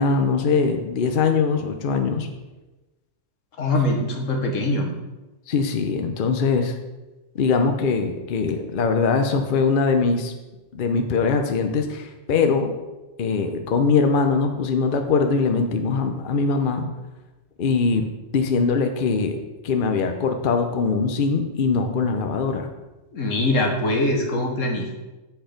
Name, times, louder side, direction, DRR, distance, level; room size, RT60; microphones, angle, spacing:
voice 1, 0.0-2.3 5.5-6.7 7.3-10.3 10.7-12.7 13.2-16.9 17.6-18.1 18.3-22.7, left 4 dB, 50° left, 5 dB, 0.8 m, -22 dB
voice 2, 3.6-4.9 23.1-24.9, left 1 dB, 80° left, 2 dB, 1.5 m, -23 dB
8.0 x 4.4 x 5.1 m, 1.1 s
omnidirectional pair, 1.3 m